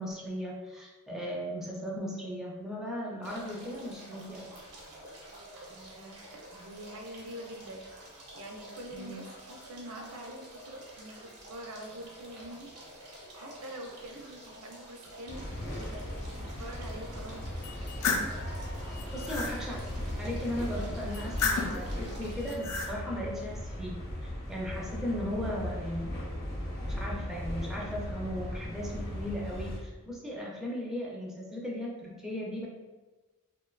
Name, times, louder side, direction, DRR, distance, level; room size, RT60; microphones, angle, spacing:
voice 1, 0.0-4.5 8.9-9.3 19.1-19.8 20.2-26.1 26.9-32.7, equal, ahead, -4 dB, 0.3 m, -37 dB
sound 1, 3.2-22.6, right 1 dB, 85° right, 0.9 m, -49 dB
voice 2, 5.7-8.1 8.3-12.7 13.1-15.4 15.7-16.0 16.3-17.4, right 1 dB, 70° right, 2 dB, 0.4 m, -45 dB
sound 2, 15.3-29.8, left 1 dB, 45° left, 0.7 m, -37 dB
sound 3, 17.6-18.3 18.9-19.5 21.1-21.8 22.4-22.9, left 4 dB, 75° left, 0.4 m, -32 dB
2.7 x 2.1 x 2.3 m, 1.3 s
head